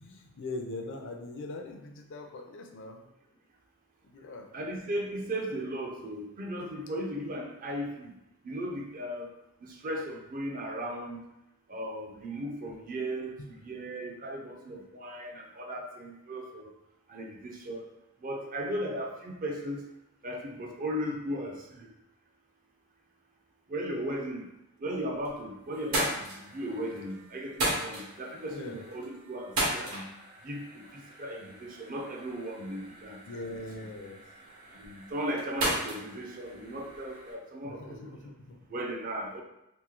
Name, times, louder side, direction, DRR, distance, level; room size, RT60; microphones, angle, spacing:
voice 1, 0.0-3.0 4.0-4.5 13.4-13.5 28.5-28.8 33.3-34.2 37.6-38.6, left 2 dB, 55° left, 4 dB, 0.5 m, -41 dB
voice 2, 4.5-8.1 8.4-9.3 9.6-11.2 11.7-13.4 13.7-16.7 17.1-17.8 18.2-19.8 20.2-21.6 23.7-24.5 24.8-30.0 30.4-33.2 34.8-38.1 38.7-39.4, right 1 dB, 40° right, 1 dB, 0.5 m, -36 dB
sound 1, 24.9-25.4 25.7-37.3, right 1 dB, 70° right, 1.2 m, -37 dB
3.0 x 2.7 x 3.6 m, 0.87 s
head